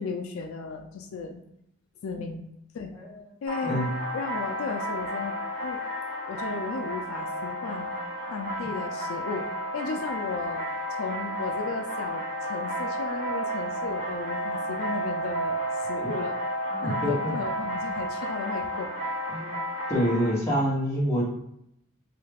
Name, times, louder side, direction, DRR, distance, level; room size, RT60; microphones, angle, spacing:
voice 1, 0.0-1.4 2.0-2.4 2.7-2.9 3.4-3.8 4.1-5.8 6.2-8.0 8.3-10.7 11.0-16.4 16.8-18.9, left 4 dB, 80° left, 4 dB, 0.4 m, -35 dB
sound 1, 3.5-20.3, equal, 35° right, 1.2 m, -32 dB
voice 2, 16.7-17.3 19.3-19.6 19.9-21.2, equal, 15° left, -6 dB, 0.9 m, -26 dB
3.2 x 2.3 x 3.3 m, 0.77 s
head